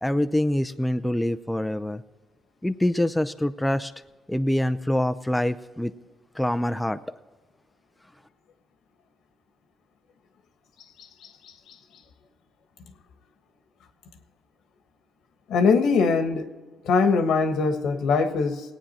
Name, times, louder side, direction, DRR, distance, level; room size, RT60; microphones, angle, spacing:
voice 1, 0.0-2.0 2.6-3.9 4.3-5.9 6.4-7.0, left 1 dB, 5° left, 9 dB, 0.5 m, -25 dB
voice 2, 15.5-16.5 16.8-18.6, left 4 dB, 80° left, 6 dB, 1.4 m, -21 dB
18.5 x 9.1 x 4.3 m, 1.3 s
cardioid pair, 90°, 0 cm